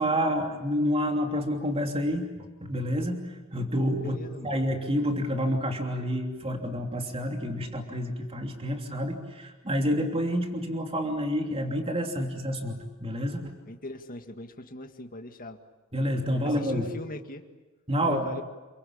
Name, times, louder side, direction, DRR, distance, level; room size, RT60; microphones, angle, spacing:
voice 1, 0.0-2.3 2.6-4.2 4.4-13.5 15.9-16.9 17.9-18.4, equal, 25° right, 3 dB, 3.1 m, -28 dB
voice 2, 4.0-4.5 13.7-15.6 16.3-17.5 18.0-18.4, left 1 dB, 40° left, 5 dB, 2.0 m, -41 dB
28.5 x 23.5 x 8.7 m, 1.2 s
head